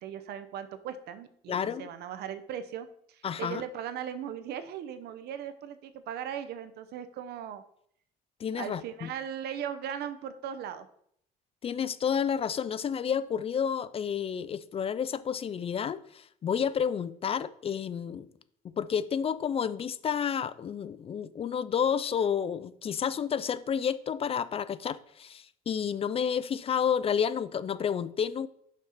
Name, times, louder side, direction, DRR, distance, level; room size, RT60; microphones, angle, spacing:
voice 1, 0.0-7.6 8.6-10.9, right 9 dB, 75° right, 0.8 m, -38 dB
voice 2, 1.5-1.9 3.2-3.6 8.4-9.1 11.6-18.3 18.6-28.5, left 7 dB, 35° left, 0.4 m, -30 dB
5.9 x 4.5 x 5.8 m
cardioid pair, 110°, 17 cm